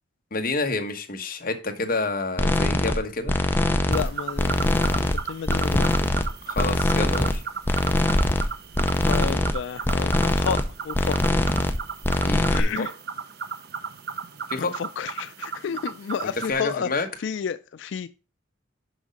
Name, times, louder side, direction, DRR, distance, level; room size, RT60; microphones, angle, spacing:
voice 1, 0.3-3.3 6.5-7.4 12.2-12.9 14.5-14.7 16.2-17.1, left 3 dB, 45° left, 1.1 m, -28 dB
sound 1, 2.4-3.0 3.3-4.1 4.4-5.2 5.5-6.3 6.6-7.4 7.7-8.5 8.7-9.5 9.8-10.7 10.9-11.8 12.0-12.6, left 1 dB, 10° left, 0.5 m, -22 dB
voice 2, 3.9-5.9 9.0-11.2 12.5-12.9 14.6-18.1, left 7 dB, 65° left, 0.3 m, -31 dB
sound 2, 3.9-16.5, right 6 dB, 50° right, 0.6 m, -36 dB
6.2 x 5.1 x 5.1 m
head